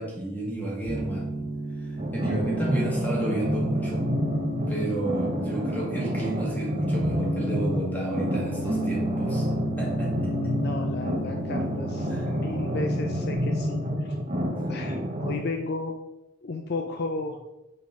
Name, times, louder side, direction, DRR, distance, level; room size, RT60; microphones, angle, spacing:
voice 1, 0.0-1.5 1.8-4.0 4.7-9.5 9.8-10.3 12.1-12.3 14.5-14.7, right 1 dB, 10° left, -5 dB, 1.9 m, -32 dB
Piano, 0.9-13.4, right 1 dB, 75° right, 1.8 m, -33 dB
sound 1, 2.0-15.3, equal, 30° right, 0.9 m, -29 dB
voice 2, 10.4-14.2 14.7-15.9 16.4-17.4, left 3 dB, 50° left, 4 dB, 0.5 m, -34 dB
5.6 x 5.2 x 3.6 m, 0.93 s
head